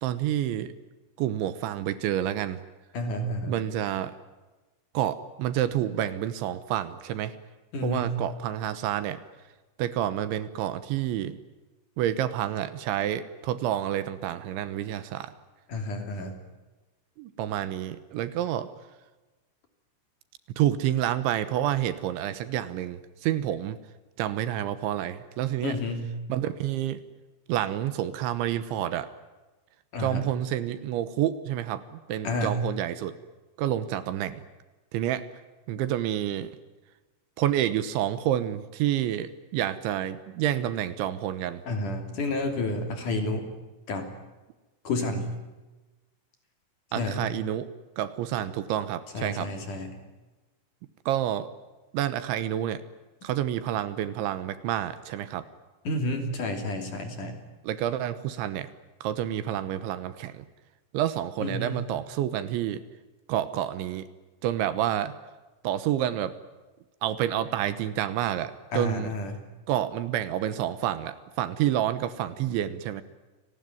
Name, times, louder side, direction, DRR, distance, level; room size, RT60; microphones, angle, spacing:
voice 1, 0.0-0.7 1.2-2.6 3.5-4.2 4.9-7.3 7.8-9.2 9.8-11.4 12.0-15.3 17.2-18.7 20.6-23.8 24.2-25.8 26.3-27.0 27.5-29.1 30.0-33.1 33.6-34.4 34.9-35.3 35.7-36.6 37.4-41.6 46.9-47.7 48.0-49.5 51.1-51.5 51.9-52.8 53.2-55.4 57.6-58.7 59.0-60.5 60.9-62.8 63.3-64.1 64.4-65.1 65.6-66.4 67.0-69.1 69.7-73.0, right 11 dB, 75° right, 13 dB, 3.3 m, -29 dB
voice 2, 2.9-3.5 7.7-8.1 15.7-16.3 25.6-26.1 29.9-30.3 32.2-32.6 41.7-43.5 43.9-44.1 44.8-45.3 47.0-47.2 49.1-49.9 55.8-57.3 61.4-61.7 68.7-69.4, left 2 dB, 45° left, 5 dB, 4.1 m, -30 dB
29.0 x 19.0 x 9.4 m, 1.2 s
omnidirectional pair, 5.6 m